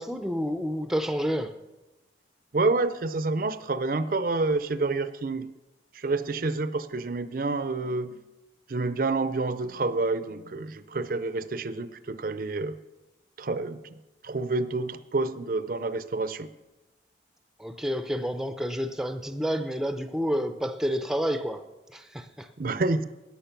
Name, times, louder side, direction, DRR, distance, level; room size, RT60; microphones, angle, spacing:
voice 1, 0.0-1.5 17.6-21.6 21.9-22.5, equal, 5° right, 9 dB, 0.5 m, -29 dB
voice 2, 2.5-5.5 5.9-8.2 8.7-12.7 13.4-14.0 14.2-16.5 22.6-23.0, right 3 dB, 50° right, 13 dB, 0.5 m, -28 dB
13.5 x 9.6 x 5.9 m, 1.1 s
head